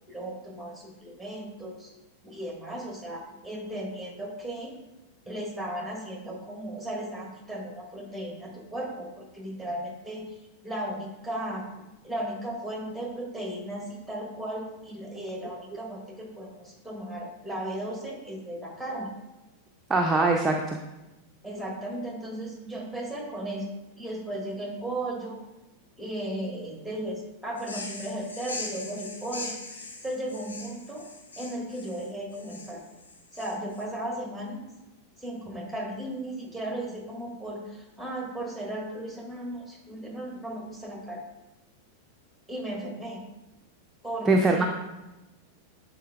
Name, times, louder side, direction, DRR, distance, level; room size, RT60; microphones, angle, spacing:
voice 1, 0.1-1.9 2.2-4.7 5.3-10.3 10.6-11.7 12.0-19.1 21.4-23.7 24.0-25.4 26.0-31.1 31.4-32.8 33.3-34.6 35.2-41.2 42.5-43.2 44.0-44.7, right 1 dB, 5° left, 0 dB, 1.4 m, -36 dB
voice 2, 19.9-20.8 44.3-44.7, right 2 dB, 15° right, 1 dB, 0.5 m, -22 dB
sound 1, 27.6-33.8, left 3 dB, 70° left, 0.8 m, -41 dB
11.0 x 4.0 x 2.3 m, 1.0 s
figure-of-eight pair, 90°, 0 cm